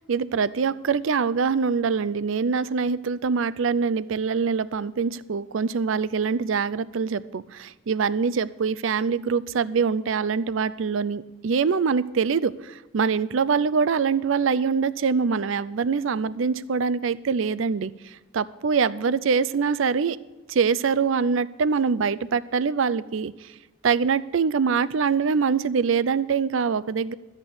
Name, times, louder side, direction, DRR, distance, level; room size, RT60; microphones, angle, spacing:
voice 1, 0.0-17.9 18.3-20.2 20.5-23.5 23.8-27.1, right 5 dB, 65° right, 17 dB, 0.5 m, -24 dB
12.5 x 8.2 x 6.9 m, 1.1 s
head